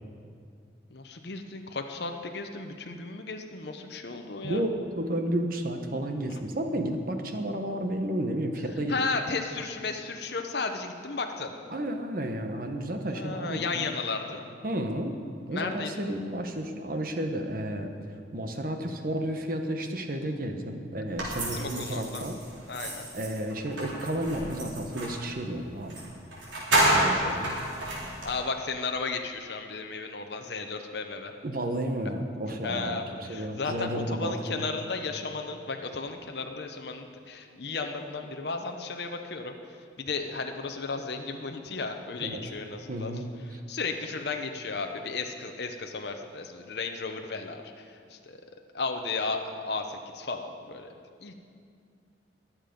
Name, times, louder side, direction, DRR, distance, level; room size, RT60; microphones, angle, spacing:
voice 1, 0.9-4.6 8.9-11.5 13.0-14.4 15.5-15.9 21.5-22.2 22.7-23.1 27.1-27.3 28.1-31.3 32.6-39.6 40.0-43.1 43.7-48.4 48.7-50.9 51.2-51.3, left 4 dB, 55° left, 4 dB, 0.8 m, -34 dB
voice 2, 4.4-8.9 11.7-13.9 14.6-15.2 15.4-22.4 23.1-26.0 26.8-27.5 31.4-34.6 42.2-42.4 42.9-43.6, right 1 dB, 45° right, 5 dB, 1.0 m, -32 dB
sound 1, 21.2-25.2 25.9-26.0 26.3-28.3, right 1 dB, 80° right, 4.0 m, -29 dB
22.0 x 7.4 x 5.3 m, 2.3 s
head